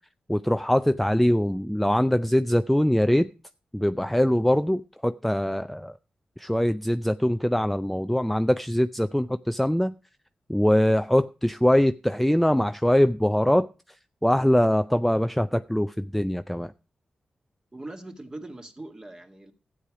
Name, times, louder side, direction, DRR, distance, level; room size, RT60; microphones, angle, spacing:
voice 1, 0.3-3.3 3.7-5.9 6.4-9.9 10.5-13.7 14.2-16.7, equal, 5° left, 0.5 m, -22 dB
voice 2, 17.7-19.5, right 2 dB, 25° right, 2.1 m, -41 dB
13.0 x 8.6 x 4.8 m
cardioid pair, 65°, 3 cm